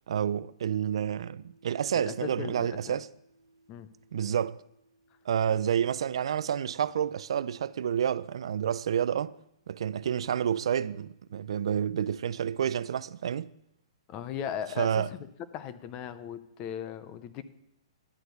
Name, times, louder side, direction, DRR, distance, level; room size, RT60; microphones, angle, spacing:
voice 1, 0.1-3.1 4.1-4.6 5.3-9.3 9.7-13.5 14.8-15.1, right 9 dB, 65° right, 0.4 m, -29 dB
sound 1, 0.6-12.7, right 2 dB, 60° left, 4.1 m, -67 dB
voice 2, 1.9-3.0 3.7-3.9 14.1-15.3 15.5-17.4, left 9 dB, 25° left, 0.5 m, -38 dB
11.0 x 4.4 x 8.0 m
hypercardioid pair, 165°, 3 cm